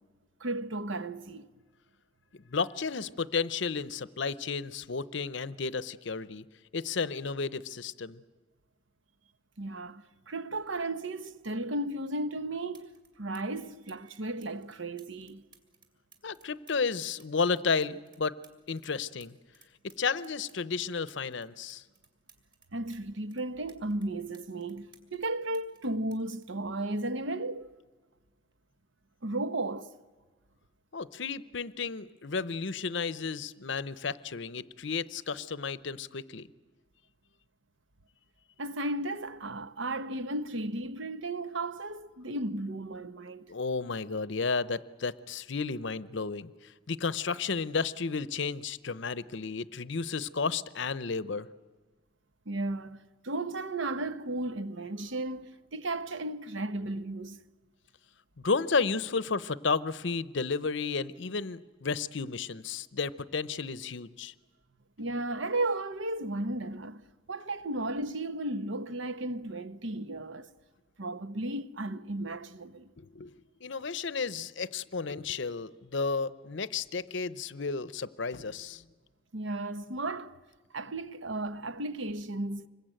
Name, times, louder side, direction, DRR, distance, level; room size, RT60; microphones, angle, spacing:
voice 1, 0.4-1.5 9.6-12.9 13.2-15.4 22.7-27.7 29.2-29.9 38.6-43.5 52.5-57.4 65.0-67.0 67.3-70.5 71.0-72.9 79.3-80.4 80.7-82.7, right 2 dB, 65° right, 1.0 m, -34 dB
voice 2, 2.3-6.4 6.7-8.2 16.2-18.3 18.7-19.4 20.0-21.8 30.9-36.5 43.5-51.5 58.4-64.3 73.0-78.9, left 4 dB, 60° left, 0.7 m, -32 dB
sound 1, 12.7-13.1 13.3-18.9 19.2-23.0 23.3-25.3 25.5-27.4 28.3-28.5, right 4 dB, 20° right, 2.8 m, -61 dB
26.0 x 21.5 x 9.0 m
head